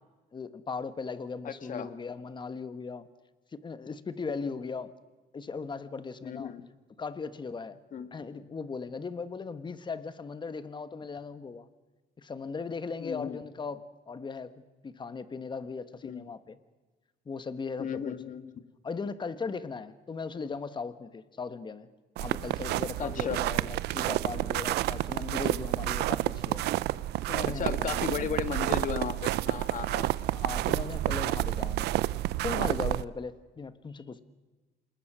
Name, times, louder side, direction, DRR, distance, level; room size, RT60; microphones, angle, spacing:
voice 1, 0.3-3.1 3.5-4.9 5.3-6.5 7.0-7.8 8.1-11.7 12.2-14.5 14.8-16.6 17.2-18.2 18.8-21.9 22.2-26.6 27.3-28.3 30.3-31.9 32.4-34.2, left 4 dB, 25° left, 13 dB, 1.4 m, -38 dB
voice 2, 1.4-1.9 4.4-4.5 6.2-6.7 7.9-8.1 13.0-13.4 16.1-16.2 17.8-18.6 23.0-23.4 27.4-30.1, left 8 dB, 50° left, 11 dB, 1.8 m, -35 dB
sound 1, 22.2-33.0, right 15 dB, 80° right, 0.7 m, -30 dB
27.5 x 20.0 x 6.2 m, 1.3 s
cardioid pair, 110°, 17 cm